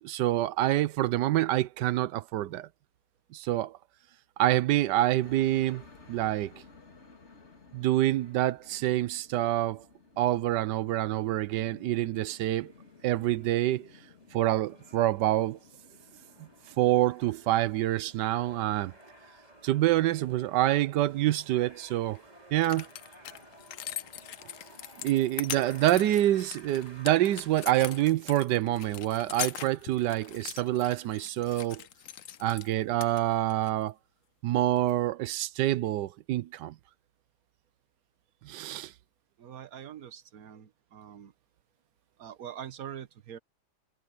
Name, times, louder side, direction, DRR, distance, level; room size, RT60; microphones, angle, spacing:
voice 1, 0.0-2.7 3.3-3.8 4.4-5.8 6.1-6.6 7.7-9.8 10.2-12.7 13.0-13.9 14.3-15.6 16.4-16.5 16.8-18.9 19.6-22.2 22.5-22.9 25.0-31.8 32.4-33.9 34.4-36.8 38.4-38.9, right 14 dB, 75° right, 1.2 m, -27 dB
sound 1, 5.2-19.5, left 4 dB, 35° left, 2.7 m, -56 dB
sound 2, 11.9-28.0, right 1 dB, 20° right, 7.1 m, -55 dB
sound 3, 22.1-22.2 22.6-32.7 33.0-33.7 34.8-34.9, left 11 dB, 60° left, 0.9 m, -41 dB
voice 2, 39.4-41.3 42.2-43.4, right 9 dB, 55° right, 1.5 m, -43 dB
omnidirectional pair, 2.0 m